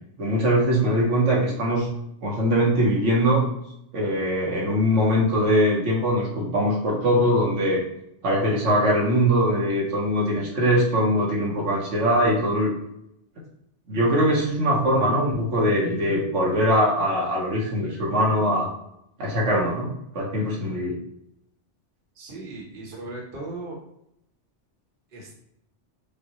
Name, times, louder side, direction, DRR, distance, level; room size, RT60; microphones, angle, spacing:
voice 1, 0.2-1.9 2.2-3.4 3.9-7.8 8.2-12.7 13.9-18.7 19.2-21.0, equal, 80° right, -3 dB, 1.3 m, -22 dB
voice 2, 22.1-23.8 25.1-25.4, right 2 dB, 50° right, -2 dB, 1.2 m, -37 dB
5.2 x 2.3 x 2.9 m, 0.78 s
omnidirectional pair, 1.2 m